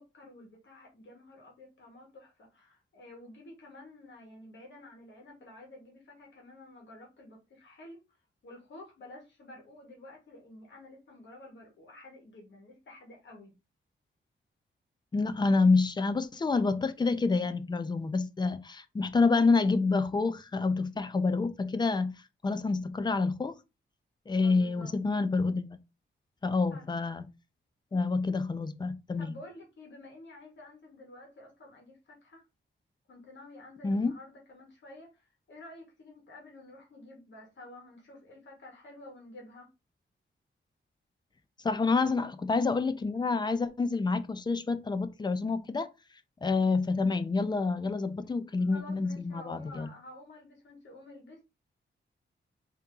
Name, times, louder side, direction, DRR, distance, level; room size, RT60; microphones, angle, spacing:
voice 1, 0.0-8.0 8.4-13.5 24.4-24.9 26.7-26.8 29.2-32.4 33.1-39.7 41.8-42.2 48.6-51.4, left 1 dB, 65° left, 1.4 m, -51 dB
voice 2, 15.1-22.2 22.4-23.6 24.3-25.7 26.4-27.3 27.9-29.4 33.8-34.1 41.6-45.9 46.4-49.9, left 4 dB, 20° left, 0.4 m, -28 dB
3.5 x 2.9 x 3.7 m
wide cardioid pair, 140°, 20 cm